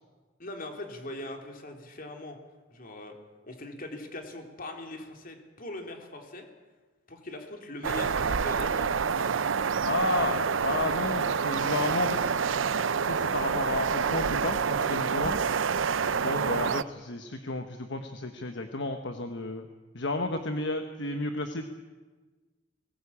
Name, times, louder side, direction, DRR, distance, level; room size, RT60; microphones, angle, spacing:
voice 1, 0.4-2.4 2.7-3.1 3.4-6.5 7.1-8.9 16.0-16.3, left 1 dB, 45° left, 3 dB, 3.3 m, -41 dB
sound 1, 7.8-16.8, right 6 dB, 75° right, 0.6 m, -27 dB
voice 2, 9.8-12.3 13.0-15.4 16.1-19.7 19.9-21.7, left 2 dB, 65° left, 6 dB, 1.3 m, -32 dB
20.5 x 18.5 x 8.6 m, 1.3 s
head